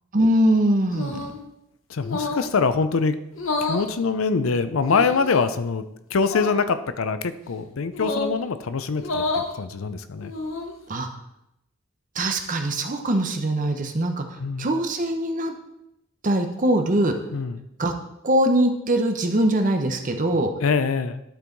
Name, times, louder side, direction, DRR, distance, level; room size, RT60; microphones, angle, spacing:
voice 1, 0.1-1.2 10.9-11.1 12.2-14.2 14.6-15.5 16.2-17.1 17.8-17.9 18.2-20.5, right 1 dB, 40° right, 5 dB, 0.9 m, -22 dB
sound 1, 0.9-1.4 2.0-2.5 3.3-3.9 4.8-5.4 6.2-6.6 7.9-8.4 9.0-9.5 10.2-10.8, left 3 dB, 70° left, 1.0 m, -29 dB
voice 2, 1.9-3.2 3.6-10.3 14.4-14.7 17.3-17.7 20.6-21.2, left 4 dB, 90° left, 11 dB, 0.6 m, -24 dB
12.0 x 4.7 x 4.0 m, 0.85 s
head